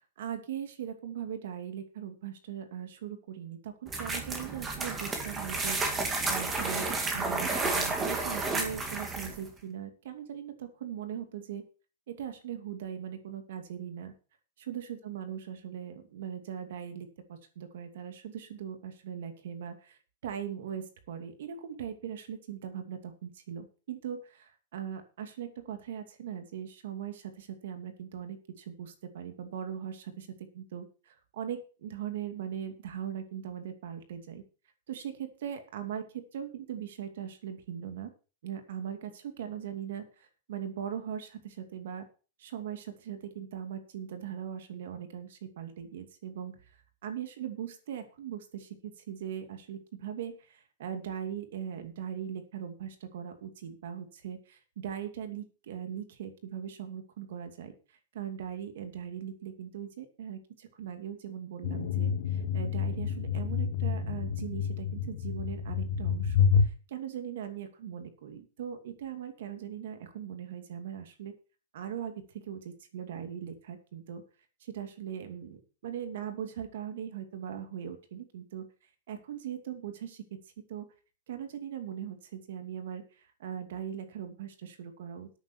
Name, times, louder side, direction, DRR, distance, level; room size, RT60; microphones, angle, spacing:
voice 1, 0.0-5.8 6.2-11.6 12.1-14.1 14.7-30.2 30.5-34.4 34.9-38.1 38.4-42.1 42.4-46.6 47.0-57.7 58.1-71.3 71.7-72.6 72.9-74.2 74.6-78.7 79.1-80.4 80.7-80.8 81.3-85.3, right 9 dB, 60° right, 7 dB, 2.6 m, -40 dB
sound 1, 3.9-9.5, right 3 dB, 10° right, 1.9 m, -31 dB
sound 2, 61.6-66.7, left 7 dB, 50° left, 1.8 m, -28 dB
12.5 x 9.0 x 4.5 m, 0.34 s
supercardioid pair, 180°, 0 cm